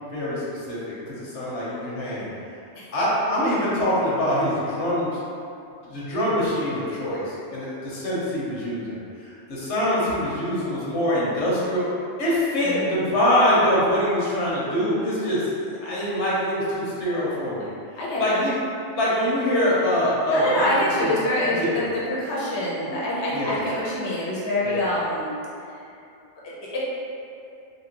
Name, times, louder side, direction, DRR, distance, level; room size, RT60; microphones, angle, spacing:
voice 1, 0.1-2.3 2.9-5.1 5.9-11.8 12.2-17.7 18.2-18.5 18.9-20.7 21.0-21.1 21.6-21.7 23.3-23.6 24.6-24.8, equal, 80° left, -7 dB, 1.1 m, -24 dB
voice 2, 12.6-13.0 18.0-18.4 20.3-25.3 26.4-26.8, left 1 dB, 30° left, -7 dB, 0.6 m, -26 dB
2.9 x 2.8 x 2.9 m, 2.6 s
omnidirectional pair, 1.2 m